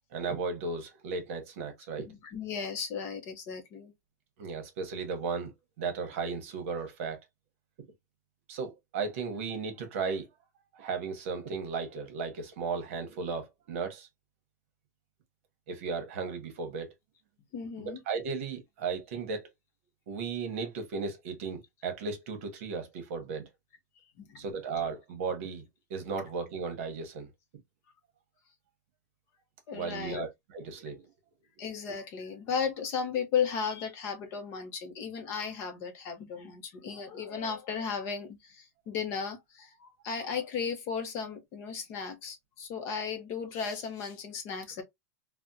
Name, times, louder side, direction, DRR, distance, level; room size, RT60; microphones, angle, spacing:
voice 1, 0.1-2.1 4.4-5.5 5.8-7.2 8.5-10.3 10.8-14.1 15.7-16.9 17.8-19.5 20.1-23.5 24.4-25.6 25.9-27.3 29.7-31.1, right 5 dB, 50° right, 1.0 m, -35 dB
voice 2, 2.1-3.9 17.5-18.0 24.2-24.4 29.7-30.2 31.6-44.8, left 6 dB, 30° left, 0.6 m, -35 dB
3.4 x 2.1 x 2.6 m
supercardioid pair, 170°, 9 cm